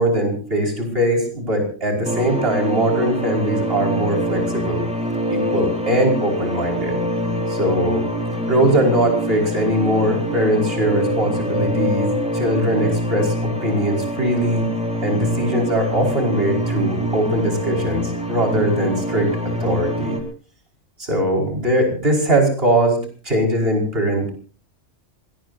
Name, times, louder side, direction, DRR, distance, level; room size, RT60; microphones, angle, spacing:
voice 1, 0.0-4.8 5.3-7.0 7.5-8.0 8.5-14.7 15.0-19.3 19.6-20.2 21.0-24.3, right 1 dB, 50° right, 2 dB, 5.5 m, -21 dB
sound 1, 2.0-20.2, equal, 5° right, 4.9 m, -25 dB
26.5 x 19.0 x 2.7 m, 0.38 s
omnidirectional pair, 1.2 m